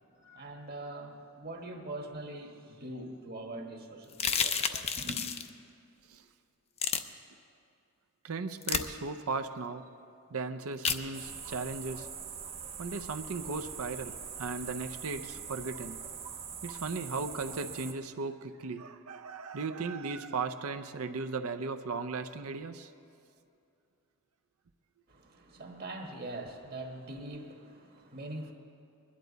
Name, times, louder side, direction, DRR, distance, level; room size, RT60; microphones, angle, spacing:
voice 1, 0.1-5.2 25.1-28.5, right 2 dB, 45° right, 2 dB, 1.4 m, -43 dB
sound 1, 4.1-5.5 6.8-7.0 8.6-8.9 10.8-11.0, left 6 dB, 30° left, 0.5 m, -30 dB
voice 2, 8.2-9.9 10.3-12.1 12.8-16.0 16.6-22.9, right 4 dB, 70° right, 9 dB, 0.6 m, -37 dB
sound 2, 11.1-17.9, right 7 dB, 25° right, 0.6 m, -43 dB
21.0 x 11.5 x 4.0 m, 2.5 s
head